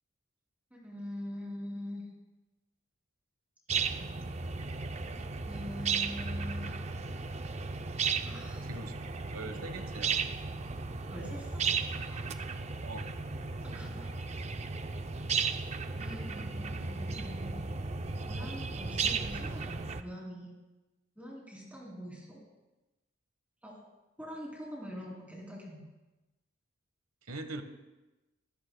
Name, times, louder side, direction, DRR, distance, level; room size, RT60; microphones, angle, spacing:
voice 1, 0.7-2.1 5.5-6.7 8.2-8.7 11.1-12.2 13.6-14.1 16.0-17.6 18.2-20.5 21.2-22.4 23.6-23.7 24.2-25.8, equal, 5° right, -4 dB, 3.1 m, -44 dB
sound 1, 3.7-20.0, right 5 dB, 30° right, 0.5 m, -35 dB
voice 2, 8.6-8.9 9.3-10.2 12.8-13.0 27.3-27.6, right 2 dB, 85° right, 8 dB, 1.3 m, -41 dB
21.0 x 16.0 x 2.3 m, 1.1 s
head